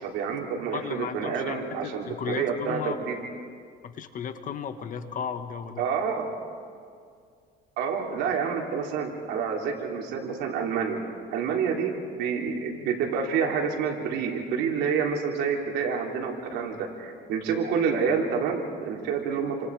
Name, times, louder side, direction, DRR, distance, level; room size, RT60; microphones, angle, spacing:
voice 1, 0.0-3.2 5.8-6.3 7.8-11.0 11.3-11.9 12.2-19.7, right 6 dB, 90° right, 0 dB, 3.5 m, -28 dB
voice 2, 0.7-1.6 2.0-3.1 3.8-5.8, left 7 dB, 50° left, 8 dB, 1.6 m, -34 dB
29.5 x 25.5 x 4.9 m, 2.2 s
cardioid pair, 110°, 17 cm